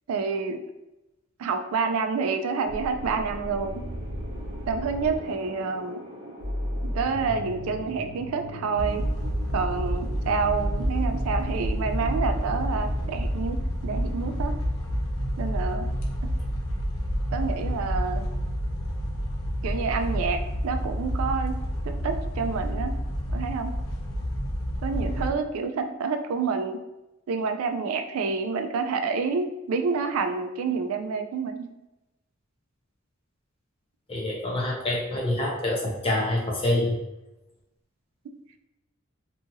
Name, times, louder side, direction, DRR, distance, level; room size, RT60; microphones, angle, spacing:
voice 1, 0.1-0.6 1.4-3.8 4.7-6.0 6.8-9.1 9.5-14.5 15.4-15.9 17.3-18.3 19.6-21.6 21.8-22.9 23.3-23.7 24.8-26.8 27.3-31.7, right 5 dB, 85° right, 6 dB, 0.3 m, -28 dB
sound 1, 2.7-13.1, equal, 50° right, 1.0 m, -37 dB
sound 2, 8.8-25.3, equal, 75° left, 0.5 m, -29 dB
voice 2, 34.1-36.9, left 1 dB, 25° left, -3 dB, 0.6 m, -26 dB
2.7 x 2.5 x 2.7 m, 0.97 s
head